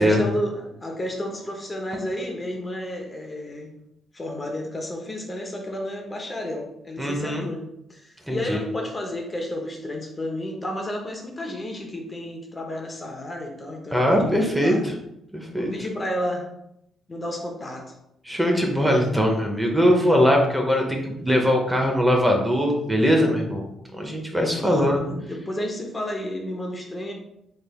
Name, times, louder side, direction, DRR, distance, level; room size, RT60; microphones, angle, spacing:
voice 1, 0.0-3.7 4.1-7.6 7.9-14.8 15.5-16.5 17.1-17.9 24.4-27.1, left 1 dB, 25° left, 2 dB, 0.7 m, -31 dB
voice 2, 7.0-7.5 8.3-8.6 13.9-14.9 15.3-15.7 18.3-25.0, equal, 10° right, 1 dB, 0.6 m, -21 dB
3.3 x 3.3 x 2.3 m, 0.79 s
cardioid pair, 90°, 0 cm